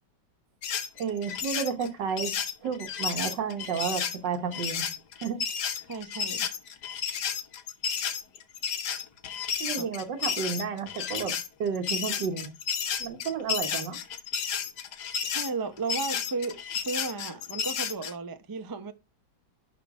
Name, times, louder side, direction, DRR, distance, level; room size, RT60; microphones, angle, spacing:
sound 1, 0.6-18.1, left 7 dB, 70° left, 1.6 m, -32 dB
voice 1, 1.0-2.3 2.6-4.9 5.2-5.4 9.6-12.5 13.0-14.0, right 6 dB, 80° right, 1.8 m, -31 dB
voice 2, 5.9-6.5 9.8-9.9 15.3-18.9, right 4 dB, 25° right, 0.4 m, -34 dB
11.5 x 3.9 x 4.8 m
omnidirectional pair, 1.9 m